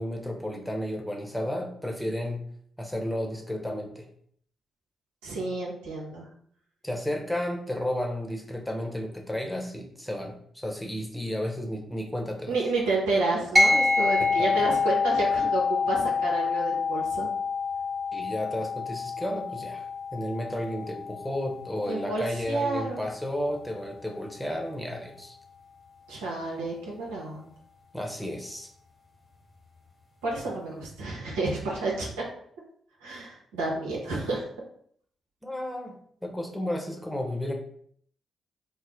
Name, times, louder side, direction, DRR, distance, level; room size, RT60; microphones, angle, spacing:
voice 1, 0.0-2.4 2.8-4.1 6.8-12.6 14.2-14.7 18.1-19.9 20.1-25.3 27.9-28.7 35.4-37.5, left 1 dB, 5° left, 2 dB, 0.9 m, -32 dB
voice 2, 5.2-6.2 12.5-17.3 21.8-23.0 26.1-27.5 30.2-32.1 33.0-34.4, right 2 dB, 90° right, -4 dB, 0.8 m, -30 dB
sound 1, 13.6-23.3, left 4 dB, 20° right, 1.2 m, -27 dB
3.6 x 2.0 x 3.4 m, 0.62 s
hypercardioid pair, 45°, 0 cm